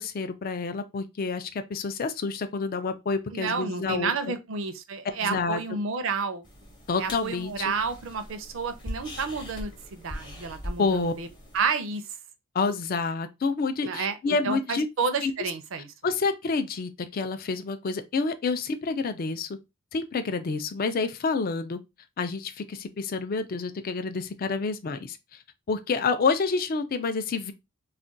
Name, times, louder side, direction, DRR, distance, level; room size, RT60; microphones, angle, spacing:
voice 1, 0.0-4.3 5.2-5.6 6.9-7.7 10.8-11.1 12.5-14.9 15.2-15.3 16.0-19.5 19.9-21.8 22.2-25.2 25.7-27.5, left 4 dB, 40° left, 0.4 m, -28 dB
voice 2, 3.3-6.4 7.0-11.3 11.5-12.0 13.8-15.9, right 5 dB, 60° right, 0.5 m, -30 dB
sound 1, 6.4-11.7, equal, 20° left, 0.7 m, -41 dB
2.4 x 2.2 x 3.8 m
head